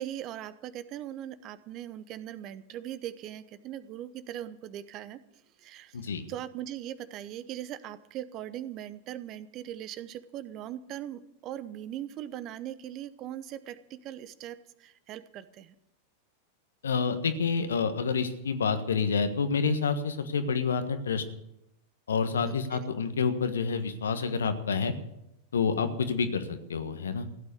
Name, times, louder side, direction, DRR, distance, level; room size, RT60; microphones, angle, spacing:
voice 1, 0.0-5.2 5.6-6.0 6.3-15.7 22.5-22.9, right 11 dB, 35° right, 15 dB, 0.9 m, -40 dB
voice 2, 16.8-21.2 22.1-24.9 25.5-27.3, left 5 dB, 70° left, 10 dB, 1.4 m, -28 dB
16.0 x 9.0 x 8.4 m, 0.83 s
figure-of-eight pair, 90°, 0 cm